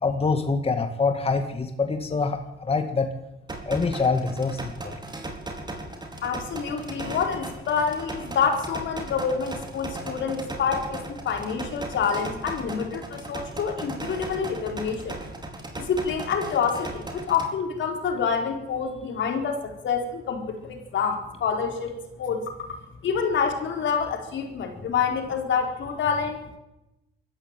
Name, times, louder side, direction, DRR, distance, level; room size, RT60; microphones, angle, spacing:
voice 1, 0.0-3.1 3.7-5.0, left 4 dB, 30° left, 6 dB, 2.0 m, -25 dB
sound 1, 3.5-17.5, right 2 dB, 20° right, 4.5 m, -37 dB
voice 2, 6.2-15.2 15.8-22.4 23.0-26.4, left 6 dB, 70° left, 4 dB, 4.4 m, -27 dB
22.5 x 14.0 x 9.1 m, 0.94 s
cardioid pair, 90°, 20 cm